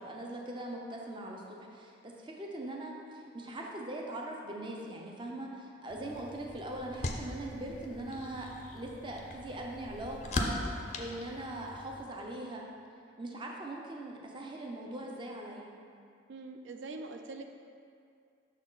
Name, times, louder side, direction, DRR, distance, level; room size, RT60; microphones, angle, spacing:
voice 1, 0.0-12.7 13.2-15.7, right 1 dB, 25° right, -1 dB, 0.6 m, -41 dB
sound 1, 5.9-12.0, left 2 dB, 40° left, 0.4 m, -40 dB
voice 2, 16.3-17.5, right 3 dB, 85° right, 5 dB, 0.4 m, -43 dB
6.1 x 4.3 x 3.9 m, 2.4 s
head